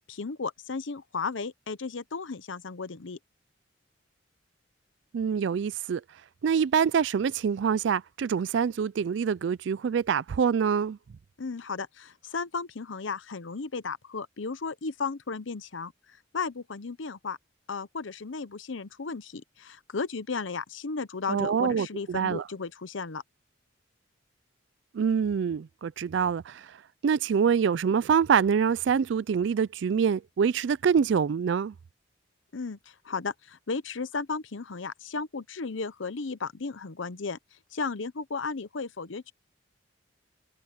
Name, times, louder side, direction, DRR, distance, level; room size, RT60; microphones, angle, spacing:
voice 1, 0.1-3.2 11.4-15.9 16.3-17.4 17.7-23.2 32.5-37.4 37.7-39.3, left 4 dB, 80° left, 0.8 m, -34 dB
voice 2, 5.1-6.0 6.4-11.0 21.3-22.4 24.9-26.7 27.0-31.7, right 6 dB, 65° right, 0.4 m, -25 dB
head